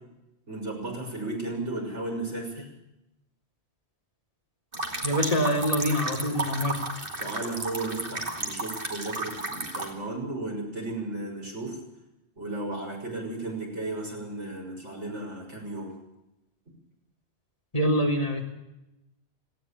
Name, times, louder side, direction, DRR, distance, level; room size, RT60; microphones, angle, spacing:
voice 1, 0.5-2.7 7.2-11.8 12.4-15.9, right 2 dB, 90° right, 0 dB, 6.9 m, -34 dB
sound 1, 4.7-9.9, right 2 dB, 50° right, 3.2 m, -33 dB
voice 2, 5.0-6.8 17.7-18.4, equal, 30° left, 1 dB, 3.8 m, -25 dB
18.5 x 17.0 x 8.7 m, 0.91 s
omnidirectional pair, 1.2 m